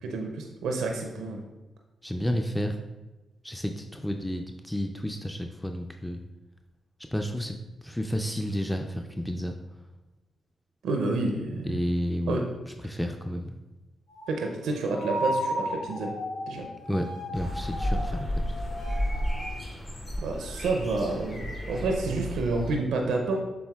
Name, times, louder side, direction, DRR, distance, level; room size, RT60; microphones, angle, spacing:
voice 1, 0.0-1.4 10.8-11.8 12.3-12.4 14.3-16.1 16.5-16.7 20.2-23.4, right 3 dB, 75° right, 2 dB, 0.4 m, -29 dB
voice 2, 2.0-2.8 3.4-6.2 7.1-7.6 7.8-9.6 11.7-12.4 12.8-13.6 16.9-17.1 17.3-18.4, equal, 5° left, 4 dB, 0.4 m, -31 dB
sound 1, 14.1-14.5 14.9-19.5, equal, 85° left, 1.2 m, -35 dB
sound 2, 17.3-22.8, equal, 40° left, 1.2 m, -32 dB
6.9 x 3.3 x 2.3 m, 1.1 s
hypercardioid pair, 40°, 0 cm